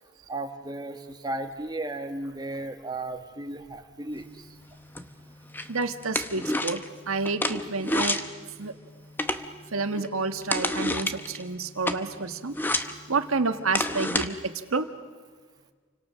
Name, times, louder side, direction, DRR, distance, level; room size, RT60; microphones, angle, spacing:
voice 1, 0.3-4.5, right 2 dB, 20° right, 6 dB, 1.5 m, -35 dB
sound 1, 4.1-14.3, left 1 dB, 10° left, 0.9 m, -32 dB
voice 2, 5.7-6.8 7.1-8.2 8.6-8.7 9.7-12.6 13.1-14.9, right 4 dB, 90° right, 8 dB, 1.5 m, -29 dB
29.5 x 25.0 x 6.4 m, 1.5 s
head